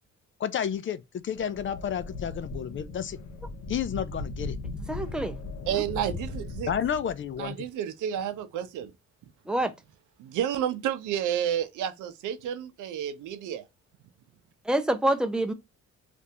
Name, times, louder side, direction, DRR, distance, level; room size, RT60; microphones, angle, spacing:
voice 1, 0.4-3.2 3.7-4.6 6.7-7.6, left 8 dB, 40° left, 0.4 m, -31 dB
sound 1, 1.3-7.5, left 2 dB, 70° left, 0.9 m, -38 dB
voice 2, 4.7-5.4 5.7-5.8 9.5-9.7 14.6-15.5, right 1 dB, 5° right, 0.6 m, -27 dB
voice 3, 5.7-6.7 7.4-8.9 10.2-13.6, right 10 dB, 85° right, 0.7 m, -30 dB
3.3 x 2.6 x 2.8 m
cardioid pair, 90°, 30 cm